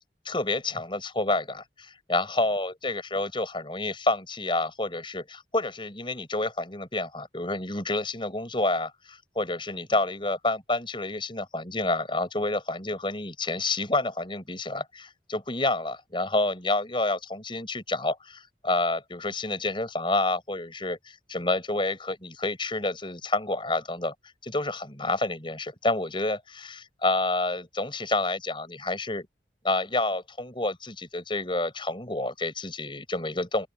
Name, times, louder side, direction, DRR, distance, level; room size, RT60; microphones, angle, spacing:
voice 1, 0.2-24.1 24.4-29.3 29.6-33.7, left 2 dB, 30° left, 5.8 m, -29 dB
open air
head